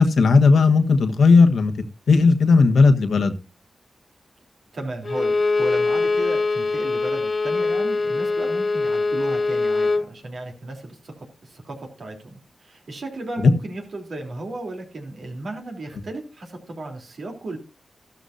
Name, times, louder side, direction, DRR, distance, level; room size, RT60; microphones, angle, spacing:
voice 1, 0.0-1.7 2.1-3.3 13.4-13.5, left 4 dB, 85° left, 6 dB, 1.3 m, -15 dB
voice 2, 4.7-17.6, right 2 dB, 65° right, 3 dB, 3.3 m, -35 dB
Bowed string instrument, 5.0-10.1, left 3 dB, 45° left, 0.6 m, -22 dB
14.0 x 13.0 x 2.7 m, 0.30 s
cardioid pair, 75°, 0 cm